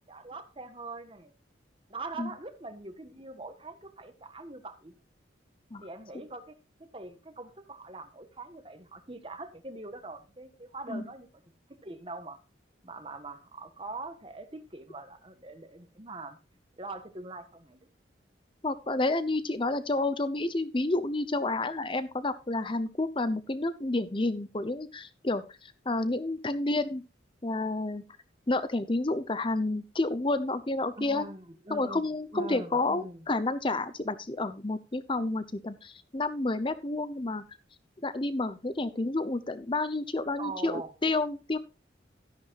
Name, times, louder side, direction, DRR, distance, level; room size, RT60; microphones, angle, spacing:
voice 1, 0.1-1.3 1.9-5.0 5.8-6.5 6.9-11.3 11.7-12.4 12.8-16.4 16.8-17.9 31.0-33.2 40.4-40.9, right 3 dB, 30° right, 1.4 m, -43 dB
voice 2, 18.6-27.0 27.4-28.0 28.5-31.3 31.7-37.4 38.0-41.6, left 2 dB, 25° left, 0.8 m, -30 dB
13.0 x 10.5 x 2.5 m
head